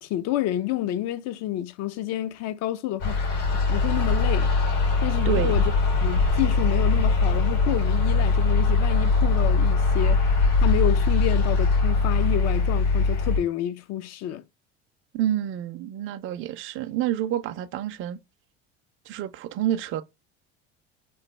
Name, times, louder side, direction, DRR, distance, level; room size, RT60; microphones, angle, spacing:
voice 1, 0.0-3.2 3.7-4.5 5.0-5.7 6.0-10.2 10.6-14.4, left 13 dB, 55° left, 0.5 m, -29 dB
sound 1, 3.0-13.4, left 3 dB, 75° left, 1.5 m, -21 dB
voice 2, 15.1-18.2 19.1-20.0, right 12 dB, 40° right, 0.4 m, -28 dB
3.1 x 2.2 x 3.2 m
supercardioid pair, 85°, 31 cm